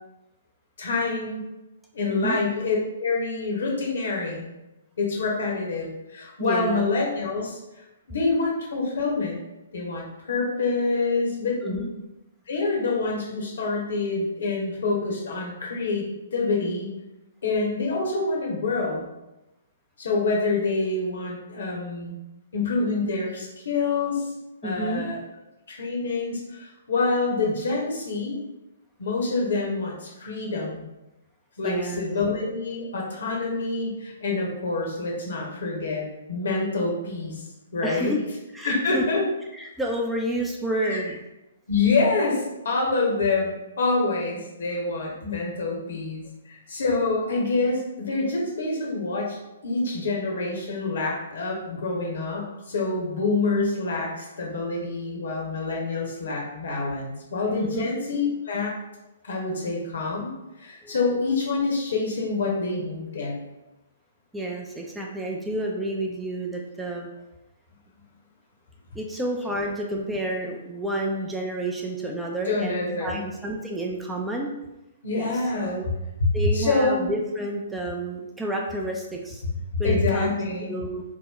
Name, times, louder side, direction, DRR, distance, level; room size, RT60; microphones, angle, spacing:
voice 1, 0.8-1.4 1.9-4.4 5.0-7.6 8.1-9.4 9.7-11.8 12.5-16.0 16.3-16.9 17.4-19.1 20.0-22.2 22.5-24.3 24.6-25.2 25.7-28.4 29.0-30.8 31.6-37.4 37.7-38.2 38.6-39.2 40.8-41.0 41.7-49.4 49.6-58.7 59.2-60.3 60.6-63.3 72.5-73.2 75.0-75.8 76.2-77.1 79.7-80.7, left 3 dB, 65° left, -1 dB, 1.0 m, -26 dB
voice 2, 6.4-6.9 11.6-11.9 24.6-25.1 31.6-32.0 37.8-38.2 38.5-39.0 39.5-41.2 57.6-57.9 60.8-60.9 64.3-67.1 68.9-74.5 75.1-75.9 76.3-79.4 79.8-80.4 80.7-81.0, right 1 dB, 5° right, -1 dB, 0.4 m, -30 dB
3.0 x 2.1 x 3.7 m, 0.96 s
figure-of-eight pair, 120°, 0 cm